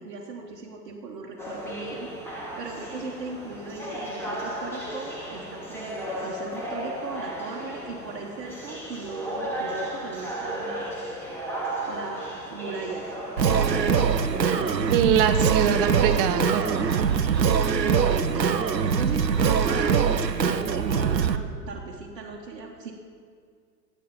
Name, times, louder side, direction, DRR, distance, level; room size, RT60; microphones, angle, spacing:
voice 1, 0.0-2.1 2.4-11.0 11.9-13.1 13.4-14.8 15.3-15.4 17.3-22.9, right 4 dB, 50° right, -3 dB, 1.6 m, -38 dB
sound 1, 1.4-17.5, right 1 dB, 5° left, 2.3 m, -35 dB
Singing, 13.4-21.4, right 6 dB, 80° right, 0.8 m, -23 dB
voice 2, 14.9-17.1, right 8 dB, 35° right, 8 dB, 1.0 m, -24 dB
13.0 x 8.6 x 7.0 m, 2.1 s
figure-of-eight pair, 105°, 49 cm